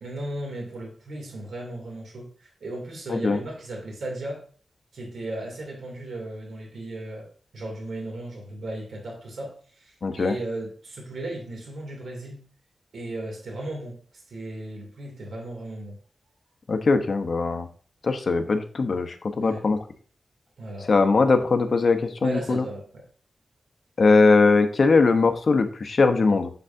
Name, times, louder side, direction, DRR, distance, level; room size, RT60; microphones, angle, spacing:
voice 1, 0.0-4.4 4.9-7.3 7.5-12.4 12.9-14.0 14.3-16.0 19.4-19.7 20.6-20.9 22.2-23.0, right 1 dB, 85° right, 1 dB, 2.6 m, -36 dB
voice 2, 10.0-10.3 16.7-17.7 18.0-19.8 20.9-22.6 24.0-26.5, left 4 dB, 55° left, 7 dB, 0.8 m, -20 dB
8.0 x 6.8 x 2.7 m, 0.43 s
wide cardioid pair, 125°, 0 cm